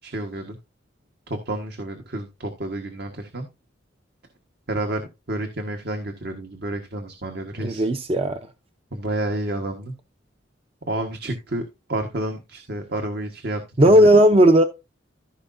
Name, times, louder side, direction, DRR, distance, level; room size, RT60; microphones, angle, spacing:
voice 1, 0.0-0.6 1.3-3.5 4.7-7.8 8.9-9.9 10.9-11.6 11.9-13.6 13.8-14.1, right 1 dB, 55° right, 1.4 m, -30 dB
voice 2, 7.6-8.4 13.8-14.6, right 1 dB, 30° right, 0.7 m, -15 dB
15.0 x 5.6 x 2.6 m
head